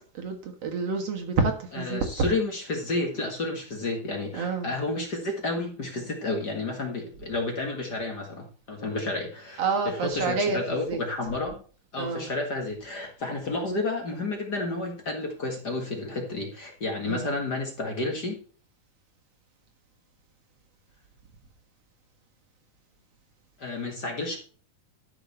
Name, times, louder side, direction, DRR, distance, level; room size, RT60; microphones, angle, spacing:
voice 1, 0.1-2.3 4.4-4.7 9.6-11.0 12.0-12.3 17.0-17.3, right 4 dB, 55° right, 4 dB, 2.3 m, -28 dB
voice 2, 1.7-11.6 11.9-18.4 23.6-24.4, left 2 dB, 40° left, 2 dB, 1.8 m, -31 dB
12.5 x 6.4 x 4.3 m, 0.41 s
omnidirectional pair, 3.8 m